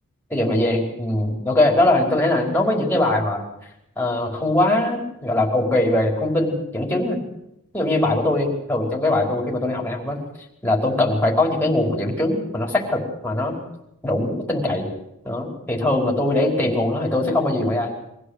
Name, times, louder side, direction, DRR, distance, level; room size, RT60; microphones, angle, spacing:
voice 1, 0.3-3.4 4.0-7.2 7.7-10.2 10.6-13.5 14.0-14.9 15.2-17.9, left 1 dB, 10° left, -1 dB, 5.1 m, -21 dB
24.5 x 16.0 x 8.3 m, 0.81 s
head